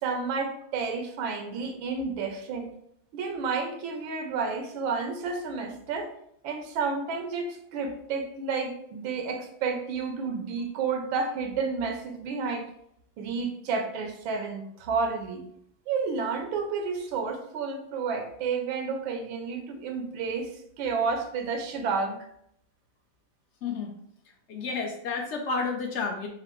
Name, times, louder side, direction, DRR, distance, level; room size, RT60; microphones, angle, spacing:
voice 1, 0.0-2.7 3.1-6.1 6.4-12.6 13.2-15.4 15.9-20.5 20.8-22.3, right 5 dB, 85° right, 4 dB, 1.5 m, -31 dB
voice 2, 23.6-23.9 24.5-26.3, left 4 dB, 70° left, 2 dB, 0.6 m, -31 dB
5.6 x 2.0 x 4.4 m, 0.71 s
omnidirectional pair, 2.1 m